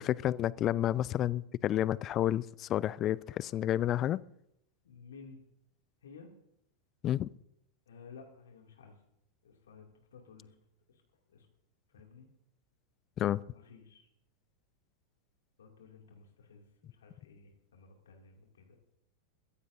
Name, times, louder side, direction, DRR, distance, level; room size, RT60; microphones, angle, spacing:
voice 1, 0.0-4.2 7.0-7.3 13.2-13.4, left 12 dB, 30° left, 0.4 m, -30 dB
voice 2, 4.8-5.4 6.0-6.3 7.9-8.9 9.4-10.5 10.9-11.0 11.3-11.5 11.9-12.3 13.5-14.1 15.6-18.8, left 5 dB, 65° left, 2.4 m, -54 dB
22.0 x 15.0 x 2.6 m
figure-of-eight pair, 90°, 0 cm